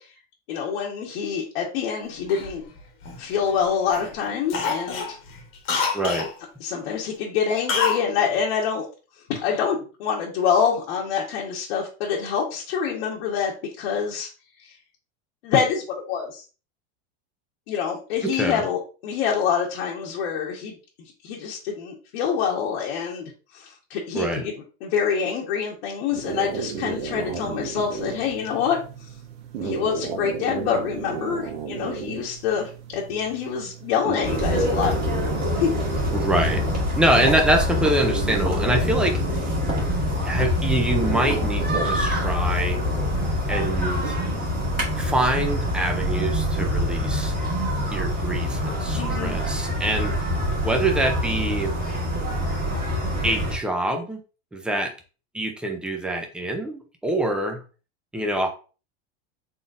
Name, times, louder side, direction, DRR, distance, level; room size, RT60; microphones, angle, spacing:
voice 1, 0.5-2.6 3.2-5.2 6.6-8.9 9.3-14.3 14.6-14.7 15.4-16.4 17.7-20.7 21.2-24.5 24.8-28.8 29.6-34.9 35.5-35.7 49.0-49.3, left 7 dB, 75° left, -3 dB, 1.2 m, -26 dB
Cough, 2.3-3.6 3.9-4.1 4.5-6.3 7.7-8.1 8.3-8.4, left 5 dB, 40° left, 1.2 m, -27 dB
voice 2, 5.9-6.3 18.2-18.6 24.1-24.5 36.1-36.6 36.9-39.2 40.2-42.8 43.5-44.2 45.0-47.3 47.9-50.1 50.6-51.7 53.2-54.2 54.5-54.9 55.3-57.6 58.1-58.5, right 1 dB, 5° right, 4 dB, 0.4 m, -25 dB
sound 1, 26.1-44.1, right 5 dB, 60° right, 1.0 m, -34 dB
sound 2, 34.2-53.6, left 1 dB, 25° right, 1.7 m, -25 dB
3.9 x 3.6 x 2.5 m, 0.35 s
supercardioid pair, 150°, 33 cm